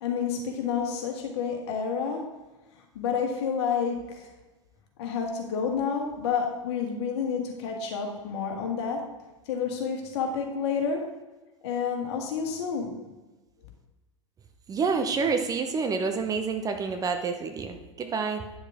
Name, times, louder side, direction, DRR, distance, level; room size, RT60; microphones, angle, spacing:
voice 1, 0.0-2.2 3.0-4.3 5.0-9.0 9.5-11.0 11.6-12.9, left 6 dB, 55° left, 2 dB, 1.9 m, -29 dB
voice 2, 14.7-18.4, right 5 dB, 20° right, 6 dB, 0.8 m, -28 dB
9.7 x 6.6 x 3.6 m, 1.1 s
figure-of-eight pair, 90°, 16 cm